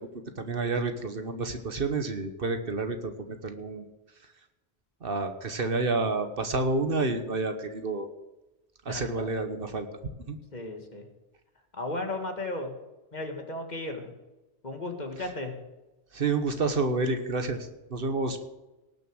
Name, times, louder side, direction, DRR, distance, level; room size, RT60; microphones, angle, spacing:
voice 1, 0.4-3.8 5.0-8.1 8.8-9.9 10.3-10.4 16.1-17.6 17.9-18.4, right 3 dB, 60° right, 8 dB, 1.3 m, -29 dB
voice 2, 8.9-9.3 10.5-11.1 11.8-12.7 13.1-14.1 14.6-15.5, left 2 dB, 40° left, 4 dB, 1.9 m, -35 dB
18.5 x 6.6 x 6.3 m, 1.0 s
omnidirectional pair, 1.1 m